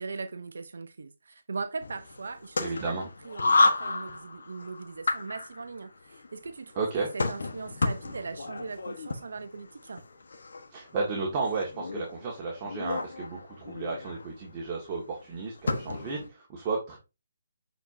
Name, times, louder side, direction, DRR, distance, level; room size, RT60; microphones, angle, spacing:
voice 1, 0.0-10.0, right 4 dB, 75° right, 0.6 m, -39 dB
sound 1, 1.8-16.3, left 3 dB, 75° left, 1.3 m, -32 dB
voice 2, 2.6-3.0 6.8-7.1 10.7-17.0, right 4 dB, 30° right, 1.8 m, -33 dB
7.9 x 4.5 x 2.7 m
hypercardioid pair, 155°, 0 cm